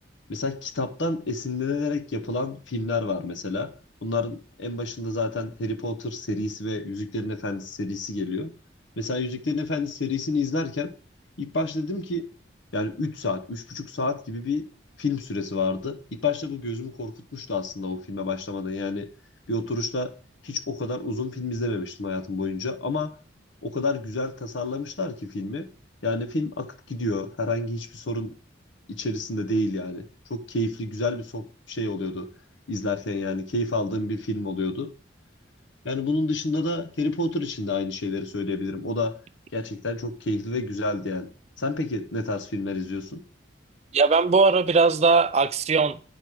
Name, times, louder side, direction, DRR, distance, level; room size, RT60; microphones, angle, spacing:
voice 1, 0.3-3.7 4.0-8.5 9.0-10.9 11.4-12.3 12.7-14.7 15.0-19.1 19.5-20.1 20.4-23.1 23.6-25.7 26.0-28.4 28.9-32.3 32.7-34.9 35.8-39.2 39.5-41.3 41.6-43.2, left 2 dB, 75° left, 0.8 m, -29 dB
voice 2, 43.9-46.2, right 4 dB, 35° right, 0.3 m, -20 dB
9.9 x 4.7 x 4.6 m
head